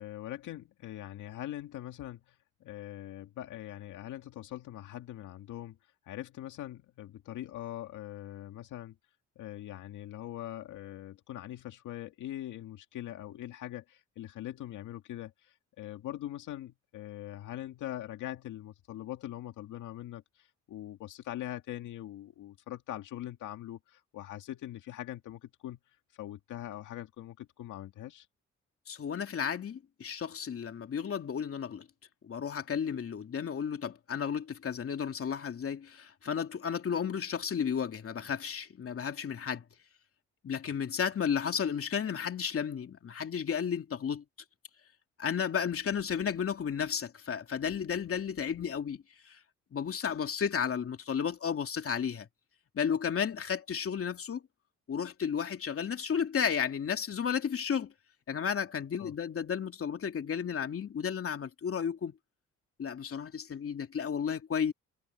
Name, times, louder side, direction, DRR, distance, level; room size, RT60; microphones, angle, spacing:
voice 1, 0.0-5.8 6.1-9.0 9.4-25.8 26.1-28.3 59.0-59.1, left 13 dB, 80° left, 2.0 m, -42 dB
voice 2, 28.9-31.9 32.2-39.6 40.4-44.2 45.2-49.4 49.7-52.3 52.7-54.4 54.9-57.9 58.3-62.1 62.8-64.7, left 7 dB, 50° left, 2.8 m, -33 dB
cardioid pair, 90°, 30 cm